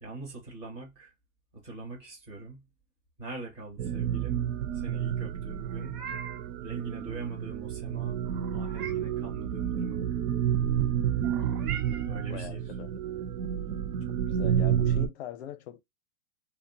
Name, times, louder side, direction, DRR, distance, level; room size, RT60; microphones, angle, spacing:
voice 1, 0.0-1.1 1.6-2.6 3.2-4.4 4.8-6.0 6.6-8.2 8.5-10.0 12.1-12.6, right 2 dB, 10° right, 0.4 m, -42 dB
sound 1, 3.8-15.1, right 9 dB, 60° right, 0.5 m, -30 dB
Meow, 5.6-6.5 8.2-9.2 11.2-12.3, right 7 dB, 90° right, 1.0 m, -42 dB
voice 2, 12.3-13.0 14.1-15.8, left 11 dB, 50° left, 0.5 m, -42 dB
2.9 x 2.0 x 2.6 m
hypercardioid pair, 155°, 46 cm